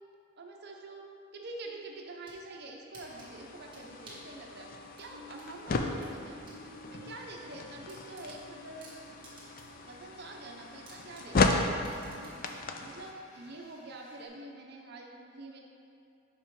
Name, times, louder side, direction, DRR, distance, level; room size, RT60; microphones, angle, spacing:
voice 1, 0.4-1.1 1.3-4.7 5.0-6.4 6.9-9.1 9.9-11.9 12.2-15.6, right 2 dB, 50° right, 0 dB, 0.8 m, -46 dB
sound 1, 2.0-2.4 2.9-4.3 5.0-6.6 7.0-7.1 7.4-7.5 7.9-9.8 10.2-10.3 10.9-12.6, right 2 dB, 20° right, 1.4 m, -54 dB
sound 2, 3.1-13.1, left 3 dB, 40° left, 0.4 m, -35 dB
sound 3, 5.1-7.2 8.0-14.3, left 1 dB, 70° left, 1.4 m, -55 dB
5.7 x 5.6 x 4.8 m, 2.7 s
head